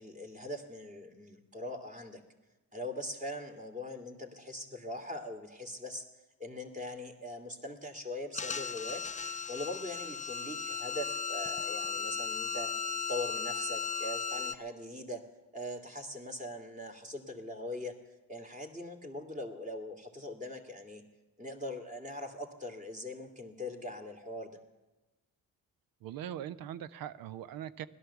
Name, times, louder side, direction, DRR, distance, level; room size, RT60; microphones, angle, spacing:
voice 1, 0.0-2.2 2.7-6.0 6.4-9.0 9.5-12.7 13.1-15.2 15.5-18.0 18.3-21.0 21.4-24.6, left 1 dB, 20° right, 3 dB, 2.6 m, -41 dB
sound 1, 8.3-14.5, left 5 dB, 20° left, 0.7 m, -36 dB
voice 2, 26.0-27.9, right 10 dB, 70° right, 16 dB, 0.7 m, -41 dB
17.0 x 11.5 x 7.1 m, 1.1 s
supercardioid pair, 75°, 36 cm